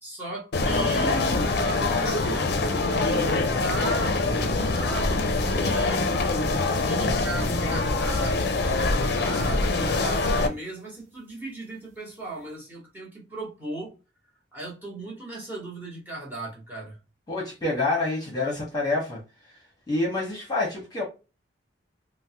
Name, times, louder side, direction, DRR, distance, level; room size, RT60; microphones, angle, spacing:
voice 1, 0.0-6.1 6.8-13.9 14.5-17.0, right 2 dB, 10° right, 1.0 m, -37 dB
sound 1, 0.5-10.5, left 3 dB, 55° left, 0.4 m, -24 dB
sound 2, 5.6-6.5 6.7-8.9 9.3-9.5 10.1-10.4 11.4-11.5 11.9-12.0, left 2 dB, 35° right, 0.5 m, -45 dB
voice 2, 17.3-19.2 19.9-21.0, left 2 dB, 20° left, 0.9 m, -27 dB
3.2 x 2.0 x 2.8 m
head